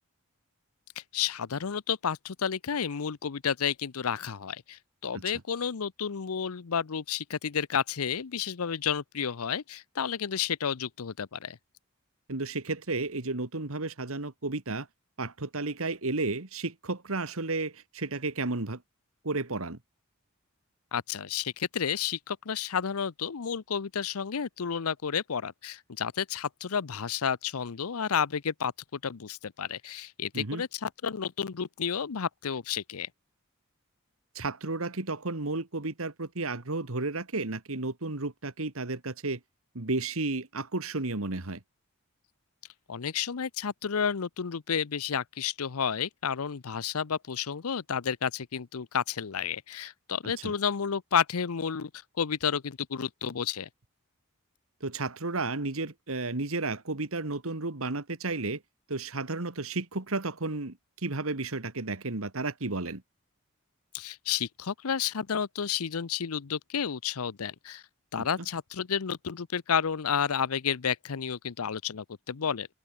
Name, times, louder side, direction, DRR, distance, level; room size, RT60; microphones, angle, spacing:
voice 1, 1.0-11.6 20.9-33.1 42.9-51.9 52.2-53.7 63.9-67.8 68.1-72.7, left 7 dB, 85° left, 0.7 m, -31 dB
voice 2, 12.3-14.9 15.2-18.8 19.2-19.8 30.3-30.6 34.4-39.4 39.7-41.6 50.4-50.5 54.8-58.6 58.9-63.0 68.2-68.3, right 3 dB, 75° right, 1.8 m, -32 dB
head